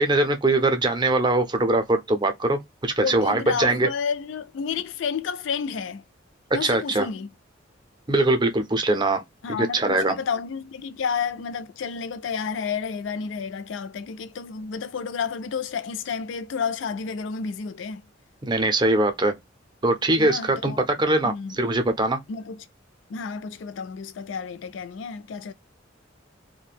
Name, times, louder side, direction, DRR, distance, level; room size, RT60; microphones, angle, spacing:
voice 1, 0.0-3.9 6.6-7.1 8.1-9.2 9.6-10.2 18.4-19.3 19.8-22.2, right 2 dB, 25° right, 0.5 m, -22 dB
voice 2, 3.0-6.0 6.5-7.3 9.4-18.1 20.2-20.9 21.2-21.6 22.3-22.7 23.1-25.5, left 6 dB, 70° left, 0.4 m, -31 dB
2.4 x 2.1 x 3.3 m
head